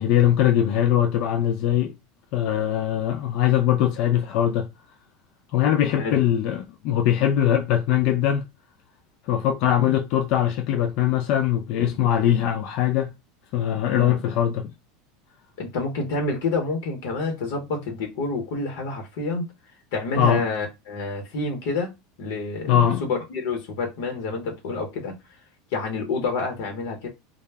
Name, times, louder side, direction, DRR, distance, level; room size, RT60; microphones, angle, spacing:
voice 1, 0.0-1.9 2.3-4.7 5.5-8.5 9.3-13.1 13.5-14.7 20.2-20.4 22.7-23.0, left 10 dB, 55° left, 0.3 m, -21 dB
voice 2, 15.6-19.4 19.9-21.9 22.2-25.1 25.7-27.1, left 3 dB, 70° left, 0.8 m, -28 dB
2.1 x 2.0 x 3.3 m
supercardioid pair, 130°, 0 cm